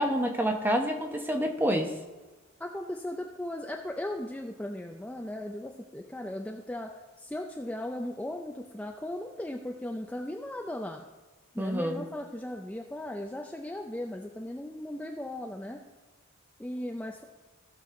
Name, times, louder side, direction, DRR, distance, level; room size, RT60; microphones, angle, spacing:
voice 1, 0.0-1.9 11.6-12.0, equal, 10° right, 4 dB, 0.9 m, -28 dB
voice 2, 2.6-6.9 7.2-11.0 11.5-15.8 16.6-17.2, left 1 dB, 5° left, 2 dB, 0.4 m, -37 dB
16.5 x 6.1 x 3.7 m, 1.2 s
head